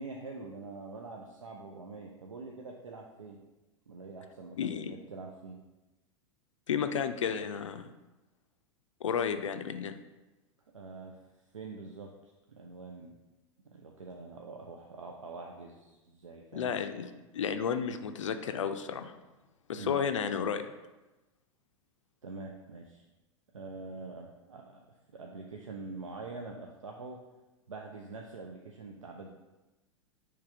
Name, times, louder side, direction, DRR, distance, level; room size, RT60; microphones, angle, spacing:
voice 1, 0.0-3.4 3.9-5.6 10.7-11.2 11.5-13.2 13.7-16.7 19.7-20.0 22.2-23.0 23.5-24.8 25.1-27.2 27.7-29.3, right 3 dB, 80° right, 1 dB, 0.5 m, -45 dB
voice 2, 4.6-5.0 6.7-7.9 9.0-10.0 16.5-19.1 19.7-20.6, left 7 dB, 70° left, 8 dB, 0.4 m, -32 dB
3.4 x 3.2 x 4.6 m, 1.1 s
figure-of-eight pair, 90°, 16 cm